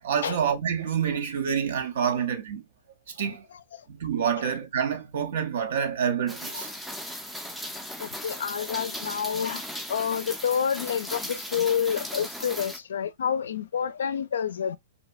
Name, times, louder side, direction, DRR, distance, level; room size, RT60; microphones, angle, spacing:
voice 1, 0.0-2.6 3.1-3.4 3.9-6.7 7.3-7.4, right 7 dB, 70° right, 0.6 m, -27 dB
Rain, 6.3-12.8, equal, ahead, 0.4 m, -37 dB
voice 2, 8.0-9.6 9.9-14.8, left 8 dB, 80° left, 0.3 m, -28 dB
2.8 x 2.1 x 2.4 m
hypercardioid pair, 125°, 0 cm